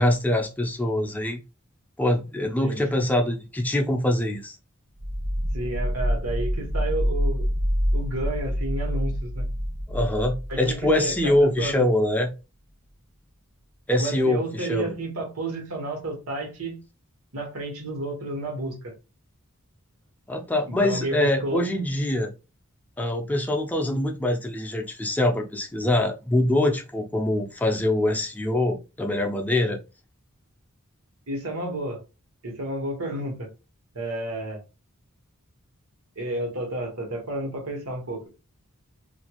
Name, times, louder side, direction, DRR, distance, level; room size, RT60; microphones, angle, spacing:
voice 1, 0.0-1.4 2.0-4.6 9.9-12.3 13.9-14.9 20.3-22.3 23.0-29.8, left 1 dB, 10° left, 0.4 m, -24 dB
sound 1, 5.0-11.7, equal, 50° right, 0.7 m, -27 dB
voice 2, 5.5-7.5 7.9-9.4 10.5-11.9 14.0-16.8 17.3-18.9 20.7-21.6 31.3-32.0 32.4-33.5 33.9-34.6 36.2-38.3, right 1 dB, 90° right, 1.2 m, -31 dB
2.5 x 2.3 x 2.9 m
head